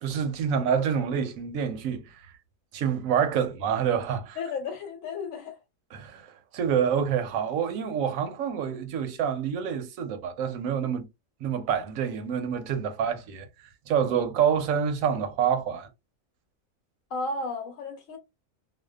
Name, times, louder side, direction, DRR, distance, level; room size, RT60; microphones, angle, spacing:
voice 1, 0.0-2.3 2.7-4.4 5.9-11.1 11.4-15.9, right 7 dB, 85° right, 1.0 m, -27 dB
voice 2, 4.4-5.5 17.1-18.2, left 3 dB, 75° left, 1.1 m, -33 dB
2.7 x 2.2 x 2.2 m
omnidirectional pair, 1.4 m